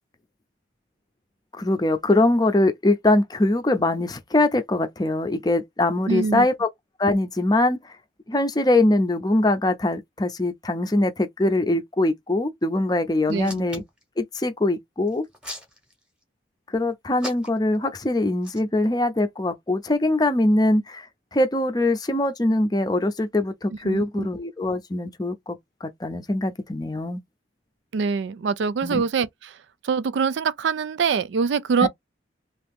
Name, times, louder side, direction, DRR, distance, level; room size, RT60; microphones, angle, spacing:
voice 1, 1.6-6.7 7.0-7.8 8.3-13.8 14.2-15.2 16.7-21.1 21.3-27.2 28.8-29.0 31.8-31.9, left 2 dB, 20° left, 0.5 m, -22 dB
voice 2, 6.1-6.5 13.3-13.7 23.8-24.3 27.9-29.3 29.8-31.9, right 5 dB, 75° right, 0.4 m, -24 dB
Hands, 13.3-14.0 15.1-16.2 17.2-17.8 18.4-18.6, left 1 dB, 5° right, 0.9 m, -37 dB
2.8 x 2.5 x 3.5 m
head